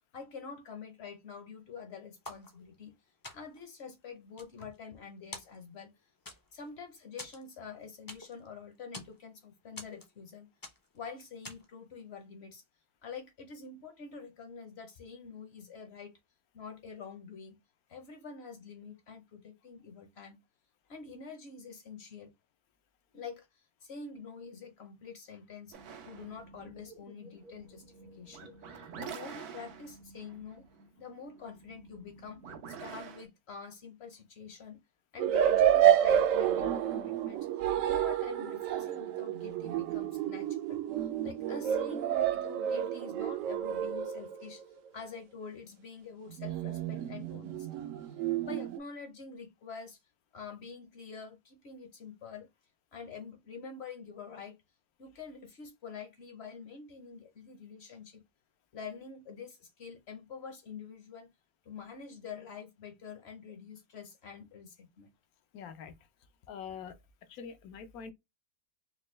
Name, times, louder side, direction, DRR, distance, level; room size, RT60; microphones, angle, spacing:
voice 1, 0.0-2.9 3.3-5.9 6.5-10.5 10.9-12.6 13.0-16.1 16.5-17.6 17.9-20.4 20.9-22.3 23.1-25.8 26.0-27.8 28.1-30.7 31.0-34.8 35.1-37.5 37.8-44.6 44.9-47.9 48.4-50.0 50.3-52.5 52.9-54.6 55.0-58.2 58.7-61.3 61.7-65.1, left 5 dB, 55° left, 0.9 m, -46 dB
sound 1, 2.2-2.9 3.2-3.7 4.2-5.0 5.3-5.9 6.3-6.7 7.2-8.5 8.7-9.2 9.8-10.3 10.6-11.0 11.4-11.8, left 2 dB, 30° left, 0.4 m, -47 dB
sound 2, 25.7-33.3, right 6 dB, 85° right, 1.3 m, -48 dB
sound 3, 35.2-44.6 46.4-48.8, right 10 dB, 70° right, 0.9 m, -29 dB
voice 2, 65.5-65.9 66.5-66.9 67.3-68.1, left 7 dB, 75° left, 1.1 m, -44 dB
4.2 x 2.2 x 3.1 m
omnidirectional pair, 1.6 m